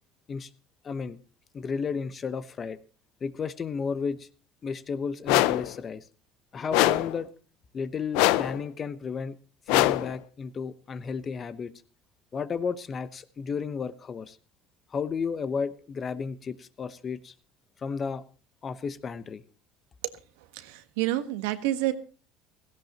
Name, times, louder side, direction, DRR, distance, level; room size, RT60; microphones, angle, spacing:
voice 1, 0.8-1.2 1.5-2.8 3.2-4.3 4.6-6.0 6.5-7.3 7.7-9.4 9.7-11.7 12.3-14.4 14.9-17.3 17.8-18.2 18.6-19.4, left 5 dB, 30° left, 14 dB, 1.0 m, -33 dB
sound 1, 5.3-5.7 6.7-7.2 8.1-8.6 9.7-10.2, left 17 dB, 80° left, 0.6 m, -23 dB
voice 2, 20.5-21.9, right 15 dB, 90° right, 9 dB, 1.5 m, -28 dB
17.0 x 16.0 x 3.0 m, 0.36 s
supercardioid pair, 115°, 0 cm